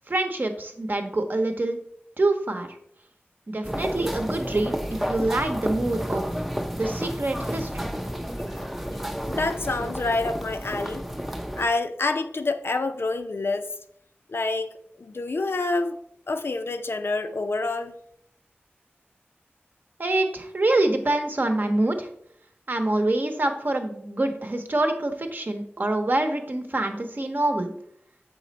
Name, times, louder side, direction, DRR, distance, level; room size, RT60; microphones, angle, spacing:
voice 1, 0.1-1.8 2.2-2.7 3.5-4.7 5.0-6.2 6.7-7.9 20.0-22.1 22.7-27.7, right 2 dB, 50° right, 5 dB, 0.9 m, -25 dB
sound 1, 3.6-11.7, equal, 5° right, 0.5 m, -31 dB
voice 2, 9.2-11.0 11.6-13.7 14.3-16.0 16.3-17.9, left 3 dB, 65° left, 7 dB, 0.6 m, -27 dB
6.9 x 4.2 x 4.0 m, 0.70 s
wide cardioid pair, 75°, 4 cm